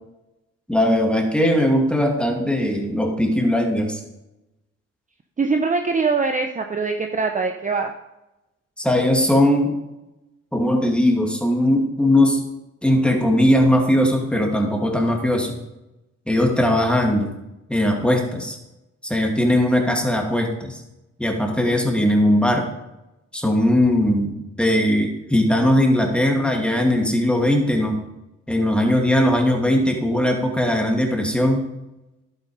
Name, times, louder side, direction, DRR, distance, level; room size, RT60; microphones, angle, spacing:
voice 1, 0.7-4.0 8.8-9.8 10.5-12.4 12.8-15.6 16.3-17.3 17.7-18.6 19.0-20.8 21.2-22.7 23.3-28.0 28.5-31.7, left 1 dB, 5° left, 1 dB, 2.5 m, -19 dB
voice 2, 5.4-7.9, right 4 dB, 25° right, 5 dB, 0.8 m, -22 dB
11.0 x 8.9 x 5.0 m, 0.95 s
cardioid pair, 90°, 30 cm